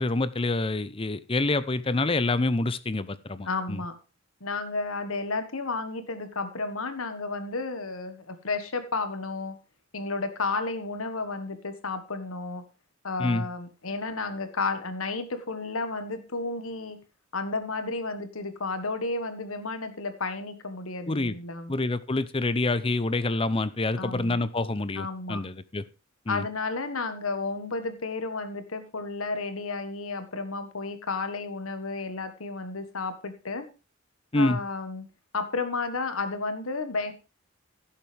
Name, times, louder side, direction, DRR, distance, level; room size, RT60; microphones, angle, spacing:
voice 1, 0.0-3.8 13.2-13.5 21.1-21.4 21.7-25.8 26.3-26.4 34.3-34.6, left 2 dB, 25° left, 16 dB, 0.6 m, -27 dB
voice 2, 3.4-3.9 4.4-9.5 9.9-12.6 13.0-17.0 17.3-21.7 23.9-24.4 24.9-25.4 26.3-33.7 34.3-35.0 35.3-37.1, left 3 dB, 85° left, 9 dB, 1.5 m, -32 dB
16.5 x 7.4 x 3.4 m, 0.30 s
head